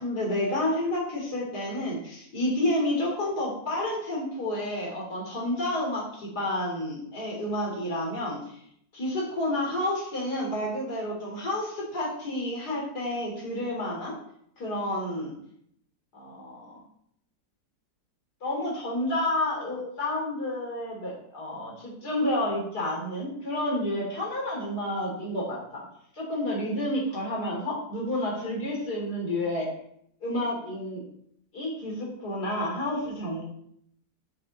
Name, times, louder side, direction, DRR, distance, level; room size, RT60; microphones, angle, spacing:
voice 1, 0.0-8.6 8.9-14.1 14.6-15.3 16.1-16.8 18.4-25.9 26.1-29.7 30.2-31.0 31.5-33.4, left 1 dB, 80° left, -2 dB, 3.8 m, -30 dB
12.5 x 6.6 x 4.2 m, 0.69 s
omnidirectional pair, 1.7 m